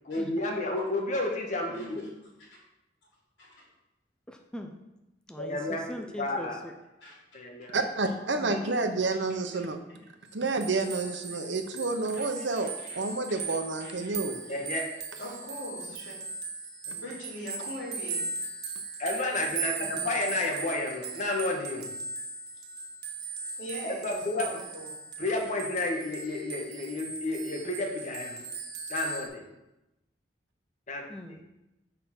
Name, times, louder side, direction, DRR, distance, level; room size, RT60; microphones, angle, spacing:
voice 1, 0.0-2.0 5.4-5.8 6.2-6.6 7.3-7.8 14.5-14.9 19.0-21.9 24.0-24.5 25.2-28.4 28.9-29.5 30.9-31.1, left 2 dB, 45° left, 1 dB, 1.4 m, -31 dB
voice 2, 4.3-4.7 5.3-6.7 8.4-8.6 31.1-31.4, equal, 5° left, 3 dB, 0.5 m, -41 dB
voice 3, 7.7-9.8 10.3-14.4 16.9-17.0, right 3 dB, 80° right, 7 dB, 0.9 m, -30 dB
voice 4, 8.5-8.8 9.5-9.6 11.3-11.4 12.1-13.0 13.3-13.4 13.8-14.2 15.2-16.1 17.0-18.2 19.8-20.0 23.6-24.9, equal, 85° left, -5 dB, 3.2 m, -42 dB
sound 1, 10.3-29.3, right 4 dB, 60° right, 1.3 m, -38 dB
6.7 x 5.3 x 6.0 m, 0.95 s
head